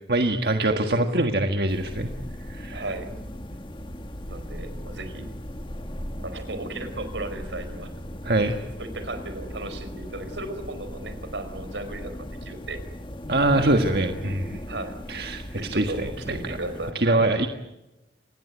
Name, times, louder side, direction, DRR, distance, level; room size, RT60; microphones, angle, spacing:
voice 1, 0.1-2.1 2.5-2.8 8.2-8.6 13.3-14.6 15.1-16.4 16.9-17.5, right 2 dB, 60° right, 5 dB, 1.6 m, -23 dB
voice 2, 0.6-1.1 2.7-3.1 4.3-5.3 6.2-7.9 8.8-12.1 12.4-12.8 14.7-15.0 15.6-17.3, right 2 dB, 90° right, 10 dB, 5.0 m, -35 dB
sound 1, 1.7-16.9, equal, 30° left, 1.7 m, -37 dB
27.0 x 20.0 x 9.6 m, 0.97 s
head